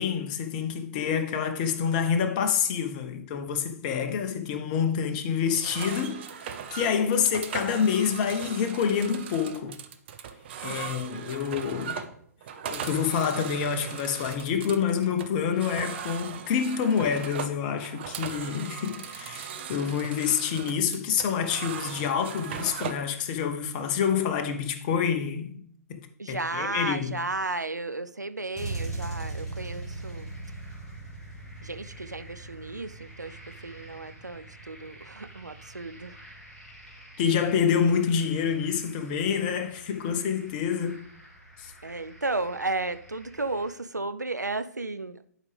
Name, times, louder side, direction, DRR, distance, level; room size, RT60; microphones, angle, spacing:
voice 1, 0.0-6.3 6.7-9.8 10.6-12.0 12.7-26.0 26.3-27.1 37.2-41.0 41.6-41.7, left 7 dB, 30° left, 0.8 m, -27 dB
sound 1, 5.5-23.1, right 7 dB, 40° right, 0.6 m, -39 dB
voice 2, 10.6-11.3 26.2-30.4 31.6-36.2 41.8-45.3, right 2 dB, 85° right, 0.5 m, -34 dB
sound 2, 28.5-43.7, right 2 dB, 5° left, 2.2 m, -42 dB
11.0 x 4.9 x 3.4 m
figure-of-eight pair, 125°, 9 cm